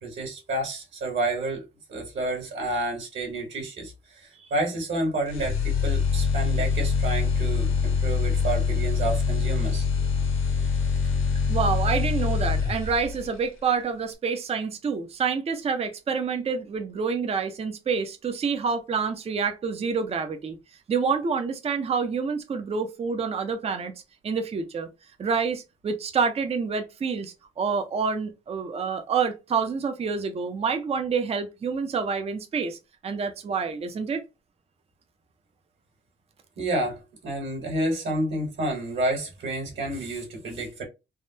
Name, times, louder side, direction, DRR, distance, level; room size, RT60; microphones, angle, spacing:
voice 1, 0.0-9.8 36.6-40.8, right 1 dB, 60° right, 1.5 m, -30 dB
sound 1, 5.3-13.3, left 5 dB, 90° left, 1.3 m, -24 dB
voice 2, 11.5-20.6 20.9-23.9 24.2-24.9 25.2-32.8 33.0-34.2, right 5 dB, 30° right, 0.4 m, -27 dB
3.4 x 2.1 x 2.6 m
wide cardioid pair, 175°, 21 cm